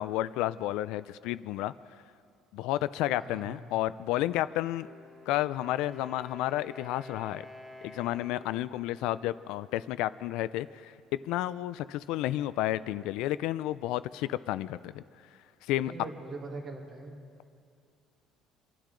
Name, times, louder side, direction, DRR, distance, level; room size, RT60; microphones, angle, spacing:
voice 1, 0.0-1.7 2.5-4.9 5.3-7.4 7.8-10.9 11.2-15.0 15.6-15.9, left 14 dB, 70° left, 15 dB, 0.3 m, -31 dB
voice 2, 3.2-3.6 15.8-17.2, right 3 dB, 25° right, 2 dB, 1.7 m, -42 dB
Wind instrument woodwind instrument, 4.7-10.4, left 2 dB, 5° left, 1.0 m, -50 dB
26.0 x 12.0 x 3.8 m, 2.3 s
cardioid pair, 175°, 0 cm